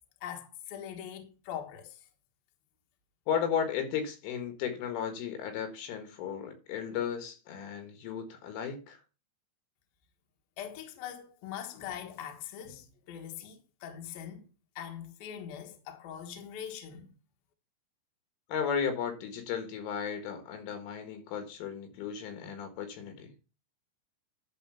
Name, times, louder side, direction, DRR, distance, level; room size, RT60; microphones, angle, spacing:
voice 1, 0.2-2.1 10.6-14.5 14.8-17.1, left 9 dB, 65° left, 2.7 m, -42 dB
voice 2, 3.3-9.0 18.5-23.3, left 7 dB, 80° left, 4.1 m, -34 dB
11.0 x 4.3 x 5.7 m
omnidirectional pair, 5.6 m